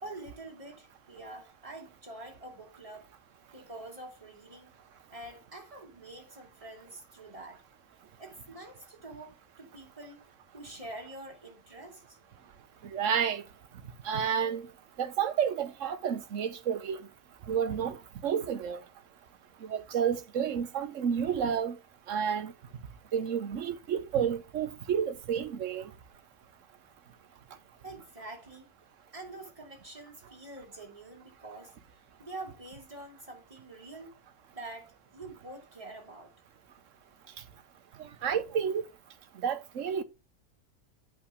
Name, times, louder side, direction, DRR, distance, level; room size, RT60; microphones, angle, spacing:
voice 1, 0.0-3.1 3.5-4.7 5.1-7.6 8.2-10.2 10.5-12.2 27.8-28.7 29.1-31.7 32.2-34.2 34.5-36.3, right 2 dB, 25° right, 2.6 m, -46 dB
voice 2, 12.9-13.4 14.0-14.6 15.0-17.1 17.5-18.0 18.2-18.8 19.6-21.8 22.1-22.5 23.1-25.9 38.2-38.8 39.4-40.0, right 8 dB, 75° right, 1.3 m, -30 dB
8.6 x 4.0 x 4.9 m
omnidirectional pair, 1.3 m